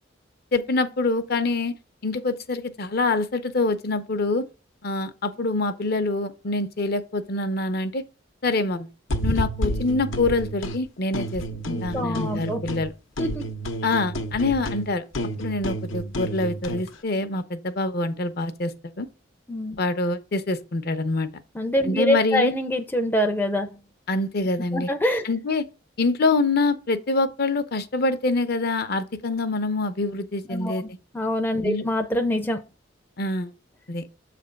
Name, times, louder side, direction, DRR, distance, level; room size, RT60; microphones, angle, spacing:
voice 1, 0.5-1.8 2.0-4.5 4.8-8.0 8.4-8.9 9.2-12.9 13.8-15.0 15.4-19.1 19.8-21.3 21.8-22.5 24.1-24.9 25.2-25.7 26.0-31.0 31.6-31.9 33.2-33.5 33.9-34.0, left 3 dB, 50° left, 0.7 m, -25 dB
sound 1, 9.1-10.8 11.1-12.9 13.2-16.9, equal, 80° left, 0.8 m, -30 dB
voice 2, 11.7-12.6 13.2-13.4 19.5-19.8 21.6-23.7 24.7-25.2 30.5-30.8 31.1-32.6, left 1 dB, 10° left, 0.5 m, -25 dB
7.4 x 3.3 x 5.1 m
head